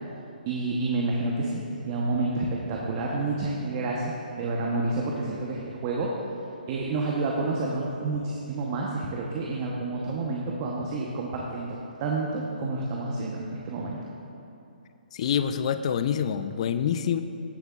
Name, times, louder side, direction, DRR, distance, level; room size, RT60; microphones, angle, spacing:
voice 1, 0.5-6.2 6.7-14.0, right 3 dB, 30° right, -3 dB, 0.9 m, -29 dB
voice 2, 15.1-17.2, left 8 dB, 40° left, 11 dB, 0.4 m, -26 dB
16.0 x 6.6 x 2.4 m, 2.7 s
hypercardioid pair, 145°, 5 cm